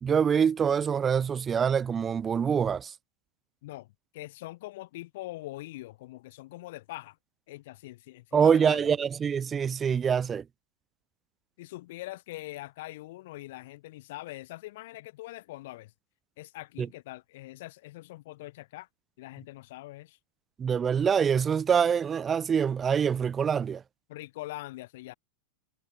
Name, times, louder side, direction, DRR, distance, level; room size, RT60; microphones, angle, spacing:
voice 1, 0.0-2.9 8.3-10.4 16.8-16.9 20.6-23.8, right 7 dB, 20° right, 0.6 m, -25 dB
voice 2, 3.6-7.2 7.5-8.9 11.6-15.9 16.4-18.9 19.2-20.2 24.1-25.1, left 18 dB, 50° left, 1.9 m, -43 dB
figure-of-eight pair, 90°, 0 cm